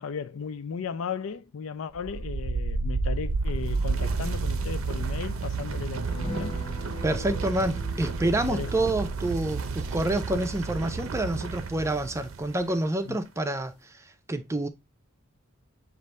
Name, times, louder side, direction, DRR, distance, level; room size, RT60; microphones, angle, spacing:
voice 1, 0.0-6.5 8.5-8.8 13.0-13.2, left 6 dB, 80° left, 0.4 m, -35 dB
sound 1, 1.9-12.7, right 4 dB, 85° right, 0.6 m, -31 dB
sound 2, 6.1-12.9 13.2-13.3 13.6-13.8, left 1 dB, 25° left, 1.1 m, -44 dB
voice 2, 7.0-14.7, right 1 dB, 15° right, 0.4 m, -28 dB
6.6 x 2.6 x 3.1 m
head